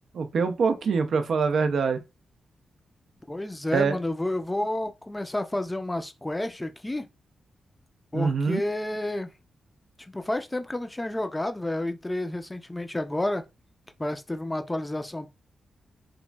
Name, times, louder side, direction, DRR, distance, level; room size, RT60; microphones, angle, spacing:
voice 1, 0.1-2.0 3.7-4.0 8.1-8.6, right 5 dB, 70° right, 0.4 m, -24 dB
voice 2, 3.3-7.1 8.1-9.3 10.1-13.4 14.0-15.3, left 1 dB, 15° left, 0.4 m, -30 dB
2.9 x 2.5 x 2.2 m
cardioid pair, 100°, 0 cm